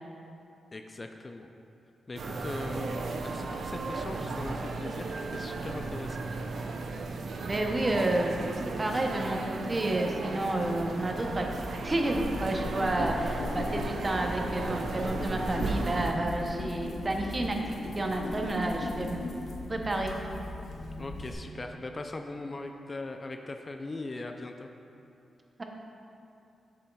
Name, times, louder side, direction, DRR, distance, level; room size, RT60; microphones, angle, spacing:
voice 1, 0.7-1.5 2.1-6.3 21.0-24.7, left 2 dB, 30° left, 5 dB, 0.3 m, -40 dB
sound 1, 2.2-16.1, right 3 dB, 70° right, 0.4 m, -35 dB
voice 2, 7.4-8.3 8.8-17.6 17.9-19.2 19.7-20.1 25.6-25.7, right 2 dB, 30° right, 2 dB, 0.7 m, -30 dB
sound 2, 11.2-21.3, left 2 dB, 75° left, 0.7 m, -38 dB
7.6 x 7.0 x 2.3 m, 2.7 s
cardioid pair, 85°, 0 cm